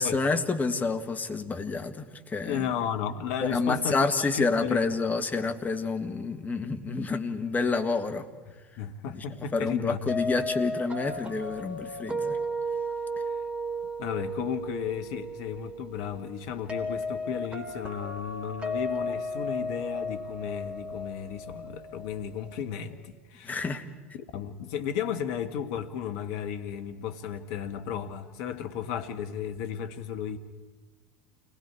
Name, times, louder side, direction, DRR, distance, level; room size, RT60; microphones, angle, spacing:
voice 1, 0.0-2.7 3.4-8.3 9.1-9.2 9.5-12.4 23.4-23.9, left 4 dB, 20° left, 1.8 m, -28 dB
voice 2, 2.4-4.8 8.8-10.1 14.0-23.6 24.3-30.4, left 8 dB, 60° left, 1.5 m, -34 dB
sound 1, 10.1-22.9, equal, 15° right, 3.1 m, -35 dB
29.0 x 19.5 x 4.7 m
hypercardioid pair, 80°, 8 cm